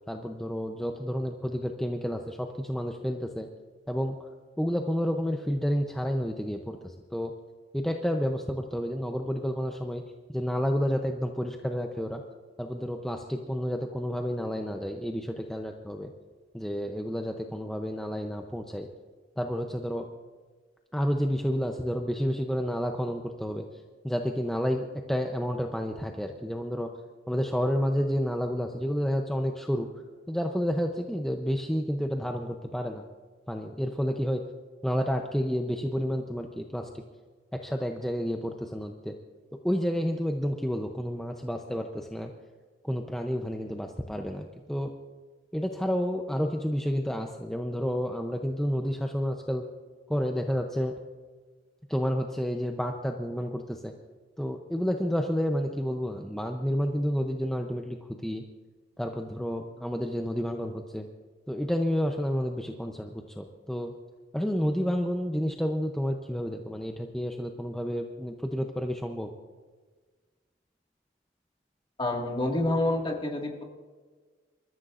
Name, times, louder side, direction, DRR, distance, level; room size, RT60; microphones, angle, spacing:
voice 1, 0.0-3.5 3.9-4.3 4.6-7.3 7.7-10.0 10.3-12.2 12.6-16.1 16.5-18.9 19.4-20.1 20.9-23.6 24.0-26.9 27.3-29.9 30.3-33.0 33.5-34.4 34.8-37.0 37.5-39.1 39.6-42.3 42.8-44.9 45.5-49.6 50.1-50.9 51.9-53.9 54.4-58.4 59.0-61.1 61.5-63.9 64.3-69.3, equal, 5° left, 2 dB, 0.6 m, -30 dB
voice 2, 72.0-73.6, left 1 dB, 25° left, 1 dB, 1.9 m, -28 dB
27.5 x 14.0 x 2.5 m, 1.4 s
head